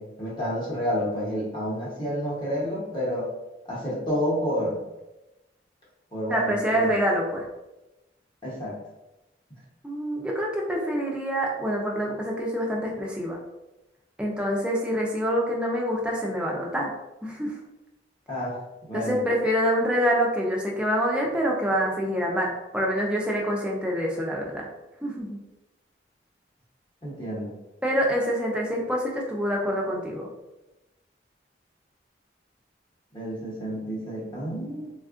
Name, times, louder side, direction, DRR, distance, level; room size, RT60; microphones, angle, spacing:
voice 1, 0.0-3.3 3.7-4.8 6.1-6.9 8.4-8.8 18.3-18.6 18.9-19.2 27.0-27.6 33.1-34.9, equal, 25° left, -6 dB, 0.8 m, -29 dB
voice 2, 6.3-7.5 9.8-13.4 14.2-16.9 17.2-17.6 18.9-24.7 25.0-25.4 27.8-30.3, equal, 5° right, -2 dB, 0.5 m, -26 dB
3.5 x 2.4 x 2.4 m, 0.97 s
head